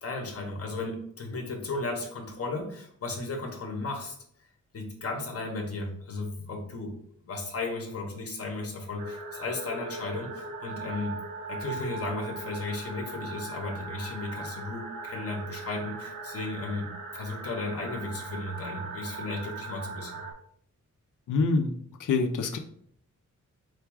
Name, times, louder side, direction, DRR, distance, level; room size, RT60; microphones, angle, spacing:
voice 1, 0.0-4.1 4.7-7.0 7.3-11.2 11.5-20.2, left 3 dB, 50° left, 2 dB, 0.9 m, -35 dB
sound 1, 9.0-20.3, right 3 dB, 85° right, 0.9 m, -39 dB
voice 2, 21.3-21.7 22.0-22.6, left 4 dB, 75° left, 5 dB, 0.6 m, -25 dB
4.5 x 2.3 x 4.6 m, 0.65 s
wide cardioid pair, 170°, 31 cm